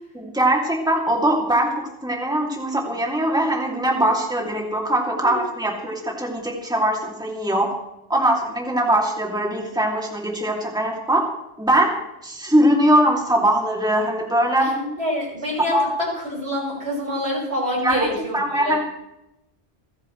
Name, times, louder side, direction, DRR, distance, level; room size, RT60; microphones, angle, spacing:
voice 1, 0.1-1.7 2.0-7.7 8.1-11.3 11.6-11.9 12.2-14.7 15.7-15.9 17.8-18.1 18.3-18.8, right 1 dB, 5° right, -1 dB, 2.7 m, -21 dB
voice 2, 14.6-18.8, left 1 dB, 70° right, -4 dB, 6.5 m, -26 dB
28.5 x 10.0 x 3.2 m, 0.88 s
omnidirectional pair, 1.1 m